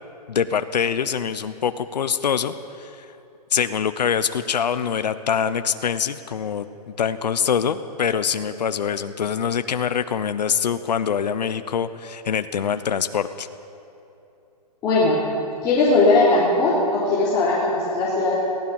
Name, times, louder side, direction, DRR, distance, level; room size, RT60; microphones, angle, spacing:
voice 1, 0.3-3.1 3.5-13.5, left 7 dB, 85° left, 11 dB, 0.9 m, -24 dB
voice 2, 14.8-15.2 15.6-18.3, left 2 dB, 15° left, -9 dB, 3.6 m, -19 dB
22.5 x 16.0 x 7.2 m, 2.9 s
hypercardioid pair, 165°, 21 cm